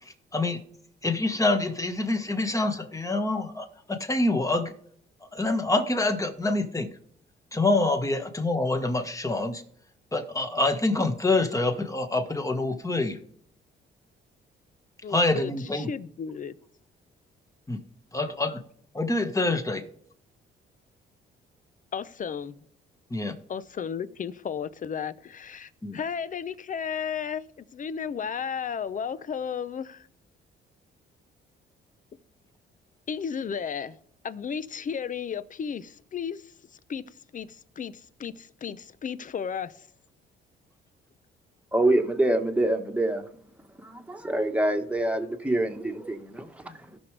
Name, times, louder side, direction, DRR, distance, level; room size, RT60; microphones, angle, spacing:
voice 1, 0.0-0.6 1.0-4.7 5.3-7.0 7.5-9.6 10.1-13.2 15.1-15.9 17.7-17.8 18.1-18.6 18.9-19.8 23.1-23.3 25.8-26.0, left 2 dB, 15° left, 1.6 m, -26 dB
voice 2, 15.0-16.6 18.2-18.6 21.9-22.6 23.5-30.1 33.1-34.0 34.2-37.0 37.3-39.9, left 7 dB, 40° left, 0.7 m, -34 dB
voice 3, 41.7-43.2 43.8-47.0, right 1 dB, 5° right, 1.5 m, -26 dB
17.0 x 6.2 x 3.4 m
cardioid pair, 90°, 20 cm